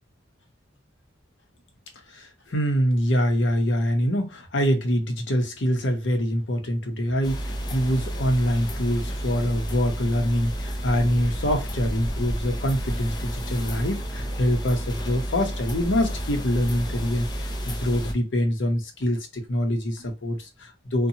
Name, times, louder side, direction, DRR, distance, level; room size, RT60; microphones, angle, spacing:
voice 1, 2.1-21.1, equal, 65° left, 0.7 m, -25 dB
sound 1, 7.2-18.1, equal, 20° left, 0.4 m, -31 dB
2.7 x 2.2 x 2.7 m
head